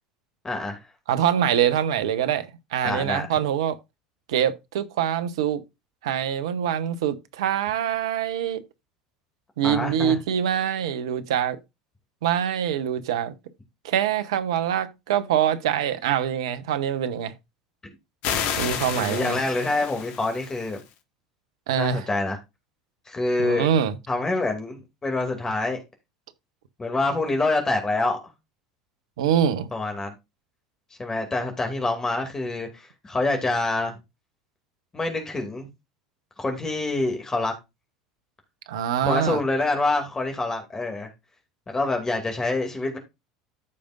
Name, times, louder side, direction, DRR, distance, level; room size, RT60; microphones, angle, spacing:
voice 1, 0.4-0.8 2.8-3.3 9.6-10.2 18.9-20.8 21.8-22.4 23.1-23.7 24.1-25.8 26.8-28.2 29.7-30.1 31.0-33.9 34.9-35.7 36.4-37.5 39.0-41.1 41.7-43.0, left 2 dB, 20° left, 2.4 m, -26 dB
voice 2, 1.1-3.8 4.3-5.6 6.0-8.6 9.6-11.6 12.2-13.3 13.8-17.3 18.6-19.4 21.7-22.1 23.4-24.0 29.2-29.7 38.7-39.4, right 9 dB, 75° right, 0.9 m, -24 dB
sound 1, 18.2-20.8, left 8 dB, 60° left, 1.6 m, -30 dB
14.0 x 5.1 x 2.5 m
hypercardioid pair, 75°, 3 cm